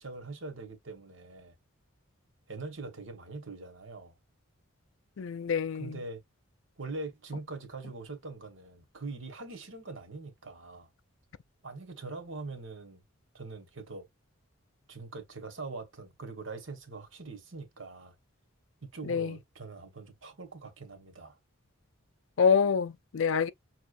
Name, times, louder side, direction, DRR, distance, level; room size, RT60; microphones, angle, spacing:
voice 1, 0.0-1.5 2.5-4.1 5.7-6.2 6.8-10.9 11.6-13.0 13.3-14.1 14.9-18.1 18.8-21.4, right 3 dB, 65° right, 1.3 m, -42 dB
voice 2, 5.2-6.0 19.0-19.4 22.4-23.5, left 6 dB, 65° left, 0.4 m, -26 dB
5.8 x 3.0 x 2.5 m
head